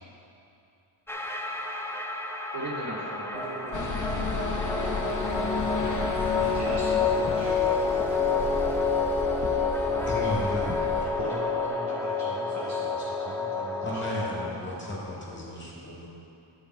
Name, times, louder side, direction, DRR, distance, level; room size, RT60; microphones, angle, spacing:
sound 1, 1.1-14.5, left 4 dB, 5° left, 0.5 m, -28 dB
voice 1, 2.5-4.6, right 1 dB, 60° right, -6 dB, 2.5 m, -38 dB
sound 2, 3.7-11.1, left 4 dB, 40° left, 1.0 m, -33 dB
voice 2, 6.4-7.6 9.8-10.3 11.2-14.1, right 2 dB, 35° right, -5 dB, 1.1 m, -39 dB
voice 3, 10.1-10.7 13.8-16.1, equal, 25° left, -5 dB, 2.1 m, -34 dB
10.0 x 7.3 x 4.5 m, 2.8 s
wide cardioid pair, 120°, 48 cm